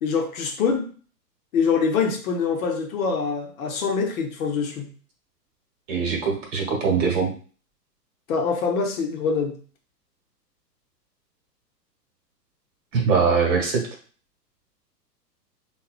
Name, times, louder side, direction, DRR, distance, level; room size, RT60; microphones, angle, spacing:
voice 1, 0.0-0.9 1.5-4.9 8.3-9.6, left 5 dB, 55° left, 3 dB, 0.8 m, -24 dB
voice 2, 5.9-7.3 12.9-13.8, right 5 dB, 50° right, 0 dB, 1.2 m, -22 dB
3.7 x 2.3 x 2.4 m, 0.42 s
hypercardioid pair, 115°, 50 cm